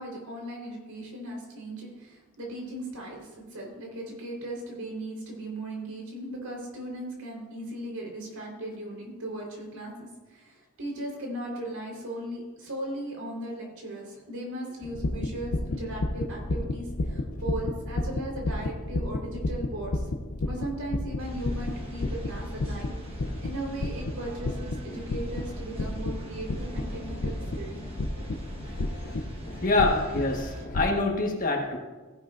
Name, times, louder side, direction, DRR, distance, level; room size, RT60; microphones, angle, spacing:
voice 1, 0.0-20.1 20.4-27.8, right 1 dB, 80° right, -1 dB, 4.1 m, -37 dB
sound 1, 14.8-31.0, left 2 dB, 65° left, 0.7 m, -33 dB
sound 2, 21.2-30.7, equal, 25° right, 1.3 m, -41 dB
voice 2, 29.5-31.8, left 2 dB, 40° left, 1 dB, 1.4 m, -26 dB
16.0 x 11.0 x 2.6 m, 1.3 s
head